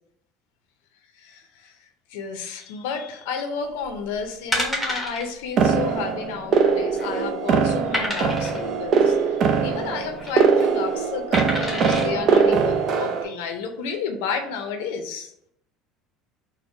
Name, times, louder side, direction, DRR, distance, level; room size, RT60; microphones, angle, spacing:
voice 1, 1.1-1.8 2.1-15.5, left 6 dB, 85° left, 6 dB, 0.6 m, -32 dB
sound 1, 3.9-4.0 4.5-5.2 5.6-5.8 6.0-6.1 6.7-7.2 7.9-8.6 9.9-10.3 11.3-12.1 12.7-12.8, equal, ahead, 1.1 m, -28 dB
sound 2, 5.6-13.2, right 5 dB, 45° right, 0.5 m, -21 dB
4.2 x 2.1 x 4.4 m, 0.75 s
supercardioid pair, 125°, 0 cm